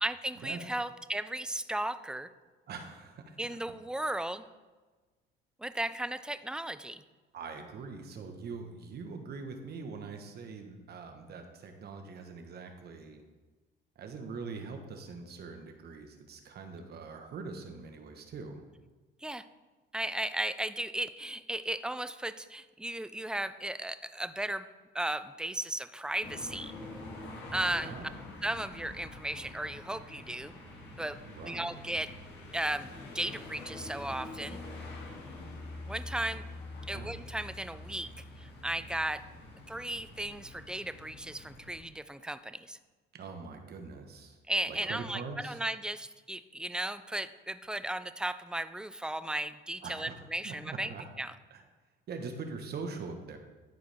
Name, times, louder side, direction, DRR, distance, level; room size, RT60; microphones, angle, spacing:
voice 1, 0.0-2.3 3.4-4.4 5.6-7.0 19.2-19.4 19.9-24.7 24.9-26.7 27.5-27.9 28.4-30.5 31.0-31.2 31.4-32.1 32.5-32.9 33.1-34.6 35.9-36.4 36.9-38.1 38.4-39.2 39.7-42.8 44.5-50.9 51.2-51.3, right 1 dB, 5° right, 12 dB, 0.4 m, -35 dB
voice 2, 2.7-3.4 7.3-13.2 13.9-18.6 27.7-28.1 31.2-31.7 36.9-37.1 43.1-44.4 44.7-45.6 49.8-50.2 50.4-51.0 51.5-51.6 52.1-53.4, right 4 dB, 50° right, 5 dB, 1.3 m, -43 dB
sound 1, 26.2-41.8, left 2 dB, 55° left, 2.2 m, -46 dB
13.0 x 4.8 x 3.5 m, 1.3 s
cardioid pair, 95°, 21 cm